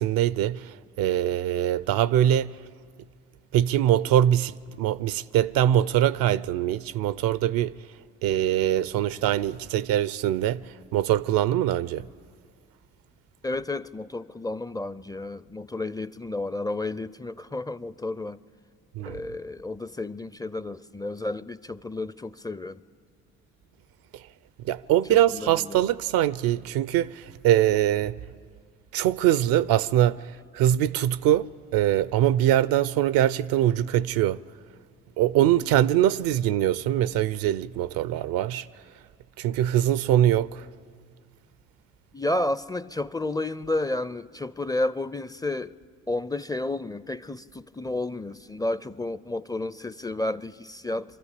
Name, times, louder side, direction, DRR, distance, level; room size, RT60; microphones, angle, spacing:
voice 1, 0.0-2.5 3.5-7.7 8.2-12.0 19.0-19.2 24.6-28.2 28.9-34.4 35.2-38.7 39.4-40.7, right 12 dB, 75° right, 0.5 m, -23 dB
voice 2, 13.4-18.4 19.1-22.8 25.1-25.9 35.4-35.7 42.1-45.7 46.1-51.2, left 2 dB, 10° left, 0.4 m, -31 dB
24.0 x 13.5 x 8.3 m
hypercardioid pair, 50°, 36 cm